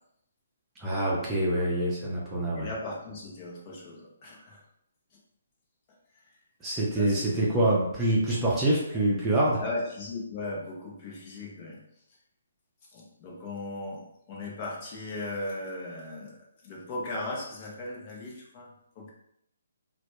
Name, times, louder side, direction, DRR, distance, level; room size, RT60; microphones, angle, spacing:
voice 1, 0.8-2.7 6.6-9.6, right 1 dB, 15° right, -5 dB, 0.6 m, -26 dB
voice 2, 2.5-4.6 7.0-7.7 9.6-11.8 12.9-19.1, left 2 dB, 30° left, -3 dB, 0.7 m, -38 dB
2.1 x 2.1 x 3.0 m, 0.75 s
figure-of-eight pair, 140°, 0 cm